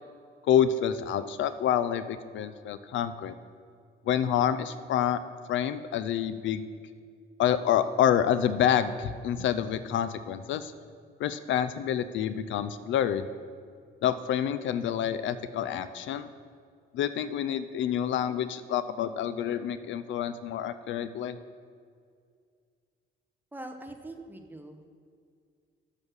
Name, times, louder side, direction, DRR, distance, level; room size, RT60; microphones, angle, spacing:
voice 1, 0.5-3.3 4.1-5.2 5.5-6.6 7.4-10.7 11.2-13.2 14.0-16.3 16.9-21.4, left 9 dB, 70° left, 13 dB, 0.4 m, -27 dB
voice 2, 23.5-24.9, right 1 dB, 10° right, 5 dB, 0.9 m, -43 dB
7.2 x 6.5 x 6.3 m, 2.2 s
cardioid pair, 90°, 20 cm